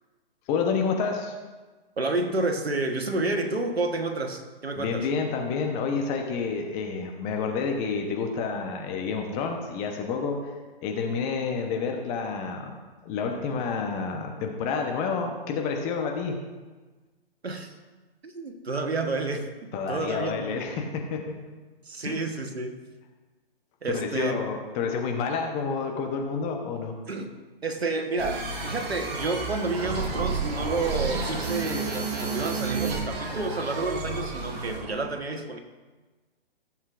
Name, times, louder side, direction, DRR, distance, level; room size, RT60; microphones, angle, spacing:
voice 1, 0.5-1.3 4.8-10.5 10.8-12.7 13.0-16.4 19.7-21.3 22.0-22.2 23.9-26.9, left 5 dB, 25° left, 2 dB, 0.9 m, -29 dB
voice 2, 2.0-5.1 17.4-17.7 18.2-20.6 21.8-22.8 23.8-24.4 27.1-27.3 27.6-35.6, right 3 dB, 90° right, 5 dB, 1.3 m, -30 dB
sound 1, 28.2-34.9, right 4 dB, 45° right, 2.1 m, -31 dB
15.0 x 7.3 x 2.5 m, 1.3 s
hypercardioid pair, 130°, 30 cm